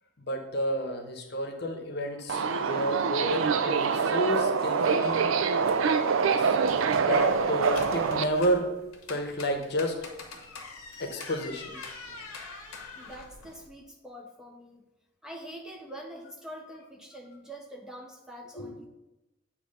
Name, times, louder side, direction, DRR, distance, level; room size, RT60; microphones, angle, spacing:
voice 1, 0.2-5.3 6.4-6.5 7.0-8.7 9.1-10.0 11.0-11.8 18.6-18.7, equal, 50° left, 5 dB, 0.8 m, -30 dB
Subway metro underground, 2.3-8.2, right 5 dB, 70° right, 0.4 m, -25 dB
sound 1, 7.2-13.7, left 3 dB, 90° left, 1.1 m, -44 dB
voice 2, 13.0-14.8 15.2-18.9, equal, 5° right, 1 dB, 0.5 m, -44 dB
8.4 x 2.9 x 5.4 m, 1.0 s
head